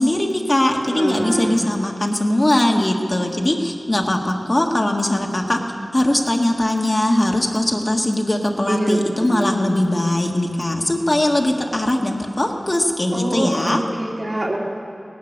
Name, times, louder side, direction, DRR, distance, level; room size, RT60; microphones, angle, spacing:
voice 1, 0.0-5.6 5.9-13.8, left 1 dB, 40° left, 1 dB, 1.5 m, -20 dB
voice 2, 0.9-1.6 8.7-9.6 13.1-14.6, right 1 dB, 55° right, -3 dB, 2.4 m, -25 dB
17.5 x 10.5 x 6.5 m, 2.7 s
wide cardioid pair, 45°, 0 cm